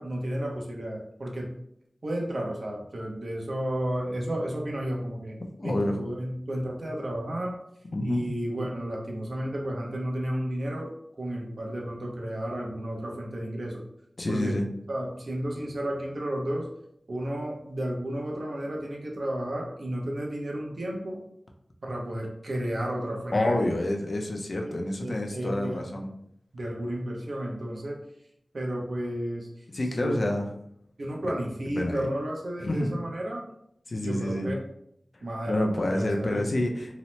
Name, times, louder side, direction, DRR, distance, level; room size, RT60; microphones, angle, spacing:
voice 1, 0.0-1.5 2.0-5.4 5.6-7.6 8.0-10.9 11.2-13.8 14.3-14.5 14.9-16.7 17.1-21.2 21.8-23.7 24.6-25.9 26.5-28.0 28.5-29.5 29.9-30.2 31.0-33.4 34.0-34.6 35.2-36.4, right 1 dB, 70° right, 0 dB, 0.6 m, -32 dB
voice 2, 5.6-6.0 7.9-8.3 14.2-14.7 23.3-26.1 29.7-30.5 31.2-31.3 31.8-32.1 32.6-33.0 33.9-34.5 35.1-37.0, left 1 dB, 60° left, 2 dB, 0.4 m, -28 dB
2.8 x 2.0 x 3.0 m, 0.74 s
wide cardioid pair, 70°, 0 cm